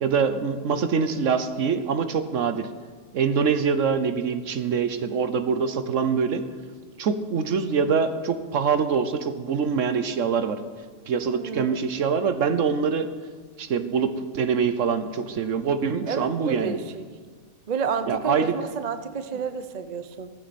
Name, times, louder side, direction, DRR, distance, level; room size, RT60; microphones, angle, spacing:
voice 1, 0.0-2.7 3.1-6.4 7.0-10.6 11.1-13.1 13.6-16.8 18.1-18.5, right 6 dB, 65° right, 10 dB, 1.1 m, -24 dB
voice 2, 11.3-11.9 16.1-17.0 17.7-20.3, right 6 dB, 40° right, 10 dB, 0.6 m, -30 dB
16.0 x 14.5 x 4.2 m, 1.5 s
omnidirectional pair, 1.5 m